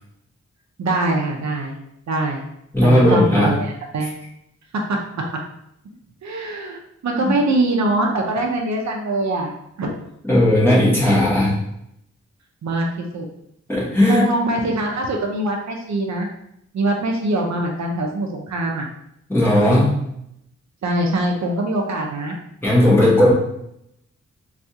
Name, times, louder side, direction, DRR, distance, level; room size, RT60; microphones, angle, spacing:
voice 1, 0.8-1.8 2.1-2.4 2.8-4.1 4.9-5.0 6.2-9.5 9.8-10.0 12.6-13.3 14.1-16.3 16.7-18.9 20.8-22.4, right 2 dB, 70° right, 1 dB, 0.5 m, -23 dB
voice 2, 2.7-3.5 4.0-4.1 7.3-7.4 10.2-11.6 13.7-14.3 19.3-19.9 22.6-23.3, left 1 dB, 10° left, -7 dB, 1.0 m, -16 dB
3.4 x 2.4 x 2.7 m, 0.77 s
wide cardioid pair, 165°, 29 cm